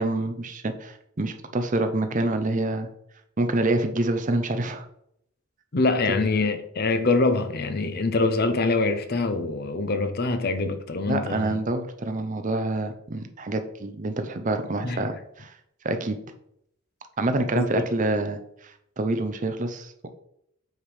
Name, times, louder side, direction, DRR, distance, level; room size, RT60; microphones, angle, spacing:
voice 1, 0.0-2.9 3.4-4.8 11.1-15.5 15.8-16.2 17.2-20.1, right 2 dB, 35° right, 0.6 m, -27 dB
voice 2, 5.7-11.6 14.8-15.0 17.5-17.9, left 3 dB, 45° left, 0.6 m, -24 dB
8.0 x 3.5 x 4.9 m
head